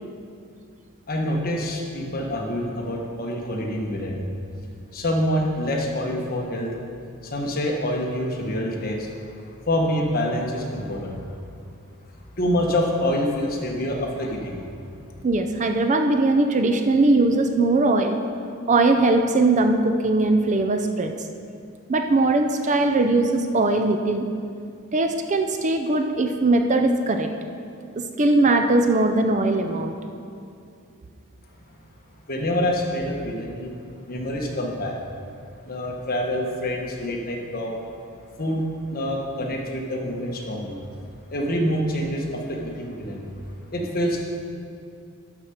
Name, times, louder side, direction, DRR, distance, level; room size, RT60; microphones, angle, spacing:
voice 1, 1.1-4.2 4.9-6.7 7.2-11.4 12.4-14.6 32.3-33.7 34.1-35.0 35.6-37.7 38.4-38.6 38.8-40.8 41.3-43.3 43.7-44.2, left 1 dB, 40° left, 0 dB, 1.3 m, -26 dB
voice 2, 15.2-18.2 18.7-21.1 21.9-24.3 24.9-27.3 28.0-29.9, right 2 dB, 35° right, 5 dB, 0.5 m, -20 dB
12.0 x 5.9 x 5.0 m, 2.4 s
head